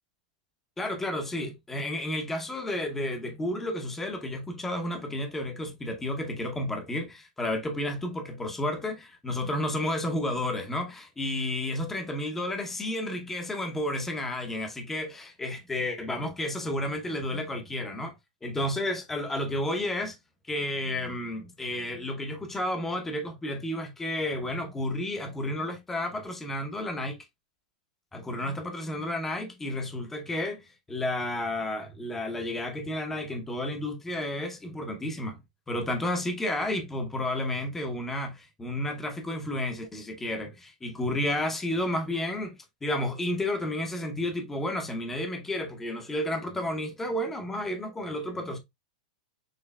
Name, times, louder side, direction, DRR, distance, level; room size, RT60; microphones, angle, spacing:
voice 1, 0.8-18.1 18.4-20.2 20.5-27.2 28.1-35.4 35.7-48.6, left 1 dB, 5° left, 0.8 m, -31 dB
6.5 x 3.1 x 2.2 m
supercardioid pair, 170°, 4 cm